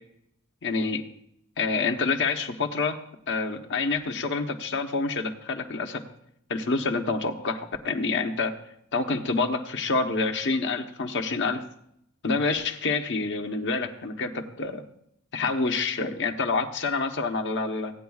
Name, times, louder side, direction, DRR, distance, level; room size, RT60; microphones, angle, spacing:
voice 1, 0.6-1.0 1.6-3.0 3.3-6.0 6.5-8.5 8.9-11.6 12.2-14.8 15.3-17.9, left 4 dB, 55° left, 4 dB, 1.0 m, -27 dB
17.5 x 9.4 x 2.4 m, 0.74 s
head